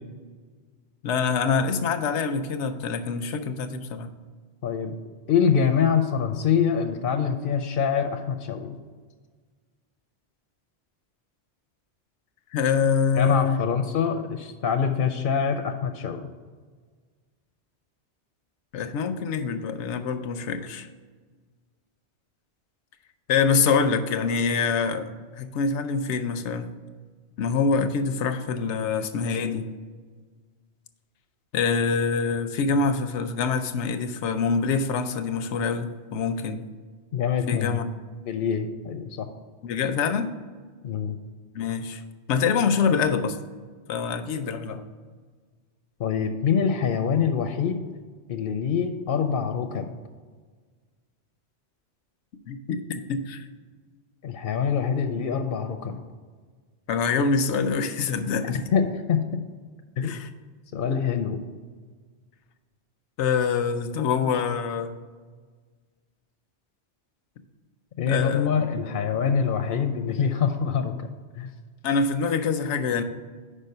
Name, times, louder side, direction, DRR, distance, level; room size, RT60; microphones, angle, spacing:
voice 1, 1.0-4.1 12.5-13.6 18.7-20.9 23.3-26.7 27.4-29.7 31.5-36.6 37.5-37.9 39.6-40.3 41.5-42.0 42.3-43.4 43.9-44.8 52.5-53.5 56.9-58.6 60.0-60.3 63.2-65.0 68.1-68.5 68.8-69.0 71.8-73.0, left 5 dB, 90° left, 8 dB, 0.9 m, -25 dB
voice 2, 4.6-5.0 5.3-8.8 13.1-16.2 37.1-37.8 38.2-39.3 40.8-41.2 46.0-47.8 48.3-49.9 54.2-56.0 58.7-59.4 60.0-60.2 60.7-61.4 68.0-71.1 71.4-71.5, left 7 dB, 60° left, 6 dB, 0.7 m, -25 dB
5.5 x 5.0 x 6.5 m, 1.5 s
omnidirectional pair, 1.1 m